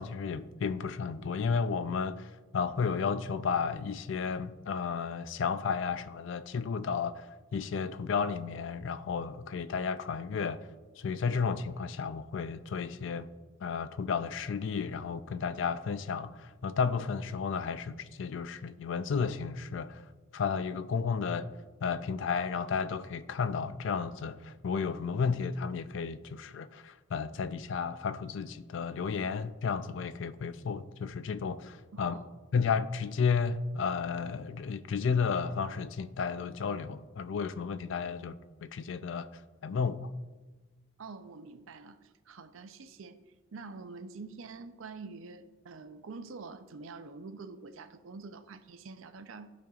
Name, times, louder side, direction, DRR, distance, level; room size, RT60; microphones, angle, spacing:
voice 1, 0.0-10.7 11.0-13.3 13.6-20.0 20.3-21.5 21.8-32.2 32.5-38.3 38.6-40.1, left 5 dB, 60° left, 0.4 m, -33 dB
voice 2, 31.9-32.3 41.0-43.2 43.5-49.5, right 4 dB, 70° right, 0.5 m, -46 dB
14.0 x 5.2 x 2.4 m
head